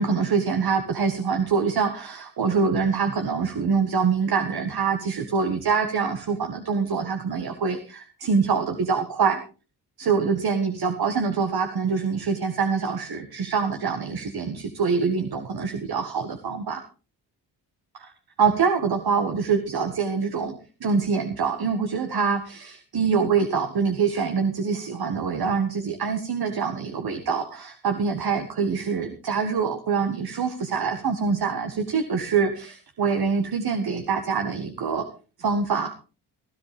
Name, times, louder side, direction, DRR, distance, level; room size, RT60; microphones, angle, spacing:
voice 1, 0.0-9.4 10.0-16.8 18.0-18.1 18.4-20.6 20.8-35.1 35.4-35.9, right 5 dB, 60° right, 6 dB, 1.8 m, -25 dB
17.0 x 13.0 x 3.6 m, 0.35 s
cardioid pair, 55°, 42 cm